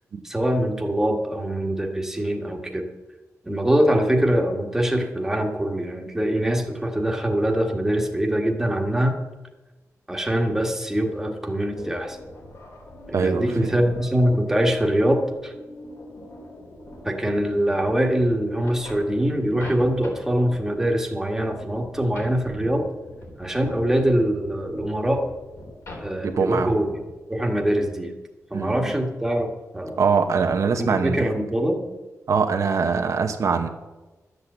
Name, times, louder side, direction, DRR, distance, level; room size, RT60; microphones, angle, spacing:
voice 1, 0.2-2.9 3.4-9.2 10.1-12.2 13.1-15.5 17.0-22.9 23.4-25.3 26.0-26.9 27.3-28.1 28.5-29.5 29.7-30.0 30.8-31.9, right 1 dB, 10° right, 2 dB, 1.5 m, -23 dB
sound 1, 11.8-27.1, left 1 dB, 65° left, 4.1 m, -43 dB
voice 2, 13.1-13.7 26.2-26.7 28.5-28.9 30.0-31.3 32.3-33.7, right 5 dB, 70° right, 5 dB, 1.0 m, -23 dB
12.0 x 8.1 x 7.9 m, 1.1 s
wide cardioid pair, 180°, 6 cm